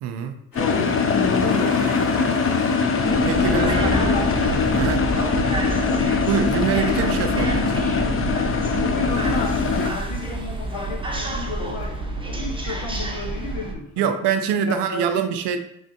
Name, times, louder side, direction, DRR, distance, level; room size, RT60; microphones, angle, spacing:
voice 1, 0.0-0.4 3.2-3.9 4.7-5.1 6.3-7.9 14.0-15.6, right 8 dB, 70° right, 8 dB, 0.5 m, -24 dB
voice 2, 0.5-2.2 3.4-4.2 8.6-14.1 14.7-15.0, left 3 dB, 80° left, 1 dB, 0.8 m, -31 dB
sound 1, 0.5-9.4 9.7-9.8, left 3 dB, 50° left, 1.5 m, -37 dB
sound 2, 0.6-9.9, left 5 dB, 30° left, 0.5 m, -22 dB
sound 3, 3.0-13.7, right 2 dB, 10° right, 0.7 m, -28 dB
3.5 x 3.2 x 2.7 m, 0.75 s
hypercardioid pair, 45°, 44 cm